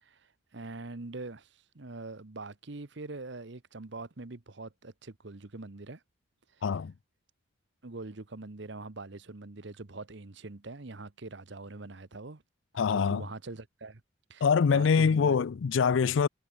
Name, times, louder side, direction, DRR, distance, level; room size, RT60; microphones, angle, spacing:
voice 1, 0.0-6.0 6.5-6.7 7.8-12.4 12.9-14.0 14.3-15.4, right 2 dB, 60° right, 1.1 m, -43 dB
voice 2, 6.6-6.9 12.8-13.2 14.4-16.3, left 6 dB, 70° left, 0.4 m, -24 dB
head